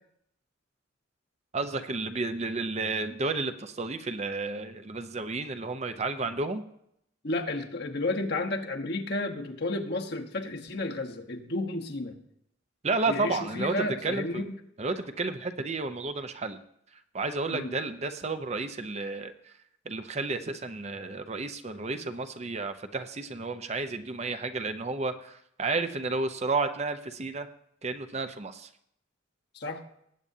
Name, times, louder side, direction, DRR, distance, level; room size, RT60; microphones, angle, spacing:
voice 1, 1.5-6.6 12.8-14.5 14.8-16.6 17.1-19.3 19.9-27.5 27.8-28.7, right 3 dB, 35° right, 9 dB, 0.7 m, -32 dB
voice 2, 7.2-12.2 13.1-14.6 17.5-17.7 21.9-22.0 29.5-29.8, left 2 dB, 55° left, 4 dB, 1.2 m, -32 dB
19.5 x 8.7 x 2.8 m, 0.73 s
head